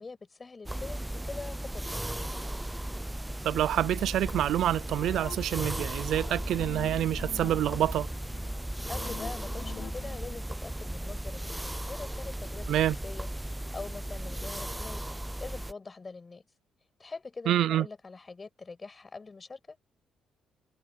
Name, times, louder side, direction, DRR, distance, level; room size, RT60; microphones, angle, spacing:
voice 1, 0.0-2.1 8.9-15.0 15.4-16.4 17.0-19.8, left 4 dB, 30° left, 6.7 m, -44 dB
sound 1, 0.7-15.7, right 1 dB, 10° right, 0.5 m, -36 dB
voice 2, 3.4-8.1 12.7-13.0 17.5-17.9, right 12 dB, 75° right, 0.5 m, -27 dB
sound 2, 4.8-10.4, left 8 dB, 60° left, 1.6 m, -47 dB
cardioid pair, 90°, 0 cm